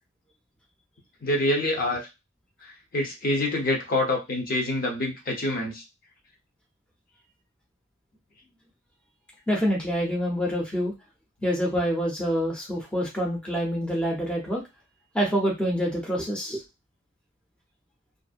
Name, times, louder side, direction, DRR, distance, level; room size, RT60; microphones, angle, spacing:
voice 1, 1.2-2.1 2.6-5.8, left 1 dB, 45° left, 0 dB, 0.7 m, -26 dB
voice 2, 9.5-10.9 11.4-14.6 15.1-16.6, equal, 5° left, -3 dB, 0.5 m, -26 dB
2.5 x 2.0 x 2.4 m, 0.23 s
head